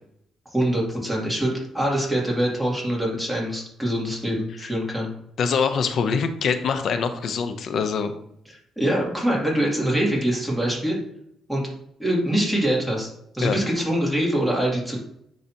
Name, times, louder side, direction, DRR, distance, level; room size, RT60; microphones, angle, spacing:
voice 1, 0.5-5.1 8.5-11.0 11.5-11.7 12.0-15.0, right 1 dB, ahead, -4 dB, 2.8 m, -24 dB
voice 2, 5.4-8.1 13.4-13.6, left 6 dB, 65° left, 9 dB, 0.8 m, -24 dB
10.0 x 4.1 x 3.0 m, 0.75 s
cardioid pair, 90°, 0 cm